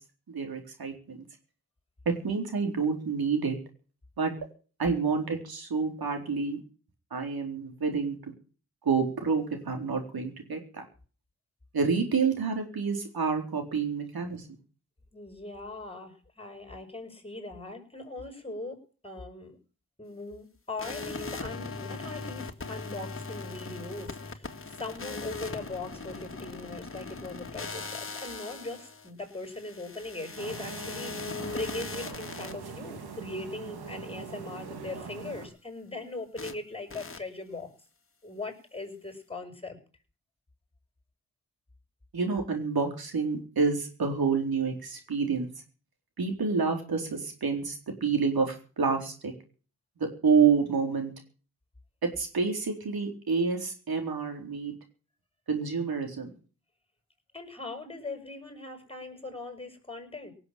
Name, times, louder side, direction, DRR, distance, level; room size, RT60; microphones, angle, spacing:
voice 1, 0.3-1.2 2.1-3.6 4.2-4.3 4.8-6.6 7.1-8.2 8.9-10.8 11.7-14.4 42.1-45.5 46.2-49.3 50.0-51.1 52.0-54.7 55.5-56.3, right 5 dB, 75° right, 4 dB, 4.3 m, -28 dB
voice 2, 15.1-19.6 20.0-37.7 38.2-39.8 57.3-60.3, left 2 dB, 15° left, 6 dB, 6.3 m, -40 dB
sound 1, 20.8-32.5 36.4-36.5 36.9-37.2, left 3 dB, 35° left, 2.2 m, -39 dB
sound 2, 30.4-35.5, right 5 dB, 90° right, 3.0 m, -42 dB
18.0 x 7.7 x 8.8 m, 0.41 s
cardioid pair, 45°, 37 cm